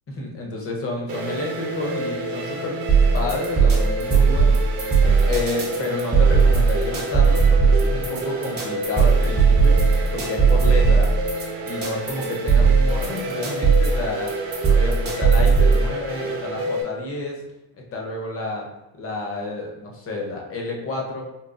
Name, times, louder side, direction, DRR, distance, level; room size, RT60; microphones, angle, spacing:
voice 1, 0.2-2.8 3.1-4.6 5.3-11.2 11.6-14.3 14.7-17.4 17.9-18.7 18.9-21.2, left 2 dB, 30° left, -1 dB, 0.7 m, -30 dB
sound 1, 1.1-16.8, right 1 dB, 50° right, 0.9 m, -29 dB
sound 2, 2.9-15.9, right 5 dB, 20° right, 0.7 m, -17 dB
3.8 x 2.3 x 2.4 m, 1.0 s
cardioid pair, 125°, 49 cm